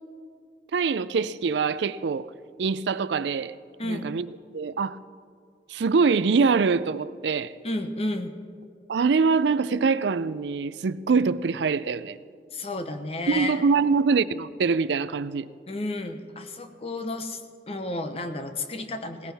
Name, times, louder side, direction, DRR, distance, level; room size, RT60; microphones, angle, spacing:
voice 1, 0.7-2.3 2.6-3.6 3.8-4.3 4.5-5.0 5.7-7.5 8.9-12.2 13.3-15.5, right 5 dB, 80° right, 16 dB, 0.4 m, -24 dB
voice 2, 3.8-4.1 7.6-8.3 12.5-13.6 15.7-17.4 17.7-19.3, left 2 dB, 35° left, 7 dB, 0.9 m, -32 dB
18.0 x 16.0 x 3.5 m, 2.3 s
head